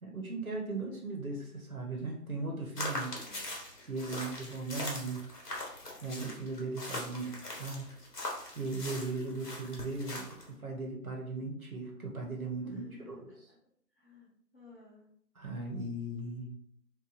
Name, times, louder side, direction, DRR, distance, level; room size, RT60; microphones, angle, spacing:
voice 1, 0.0-3.1 3.9-5.3 6.0-8.0 8.3-12.8 13.1-13.2 15.4-16.5, right 3 dB, 60° right, 0 dB, 0.9 m, -38 dB
sound 1, 2.8-10.5, left 2 dB, 70° left, 1.2 m, -41 dB
voice 2, 2.9-3.5 8.8-9.5 12.6-13.6 13.9-15.1, left 3 dB, 35° left, -8 dB, 1.4 m, -54 dB
4.0 x 2.5 x 2.5 m, 0.68 s
figure-of-eight pair, 170°, 49 cm